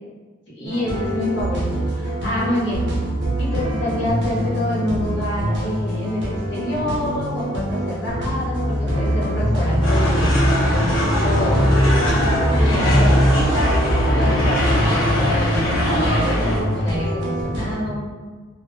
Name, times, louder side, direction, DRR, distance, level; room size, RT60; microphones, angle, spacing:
voice 1, 0.5-2.8 3.4-10.3 10.5-11.6 12.5-13.8 14.1-18.1, left 1 dB, 60° left, -7 dB, 0.8 m, -27 dB
sound 1, 0.6-17.8, right 1 dB, 55° right, 0.5 m, -25 dB
sound 2, 8.1-15.3, equal, 5° left, 0.5 m, -21 dB
sound 3, 9.8-16.6, left 1 dB, 85° left, 0.7 m, -22 dB
2.1 x 2.1 x 3.0 m, 1.4 s
head